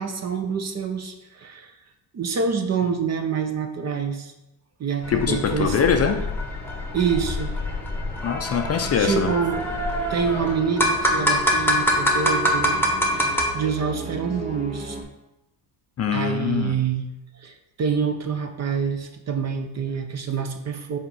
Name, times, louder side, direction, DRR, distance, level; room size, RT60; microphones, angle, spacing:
voice 1, 0.0-1.7 2.1-4.3 4.8-5.8 6.9-7.5 9.0-9.7 10.1-15.0 16.1-17.1 17.4-21.0, right 6 dB, 35° right, 6 dB, 0.7 m, -26 dB
sound 1, 5.0-13.5, equal, 5° left, 1.1 m, -25 dB
voice 2, 5.1-6.2 8.2-9.3 16.0-16.8, left 7 dB, 35° left, 5 dB, 0.5 m, -23 dB
sound 2, 6.1-15.0, right 2 dB, 10° right, 1.6 m, -38 dB
5.3 x 4.4 x 5.4 m, 0.93 s
cardioid pair, 120°, 47 cm